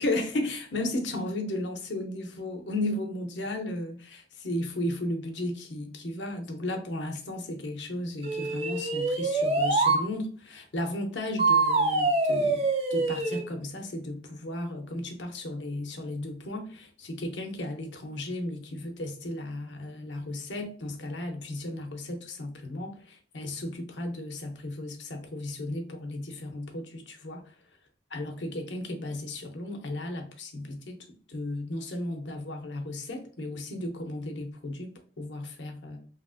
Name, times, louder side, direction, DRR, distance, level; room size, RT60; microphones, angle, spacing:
voice 1, 0.0-12.6 12.9-27.4 28.1-31.0 31.3-36.0, left 1 dB, 85° left, 0.7 m, -34 dB
sound 1, 8.2-10.0 11.4-13.4, right 3 dB, 35° right, 0.4 m, -25 dB
2.9 x 2.6 x 2.3 m
head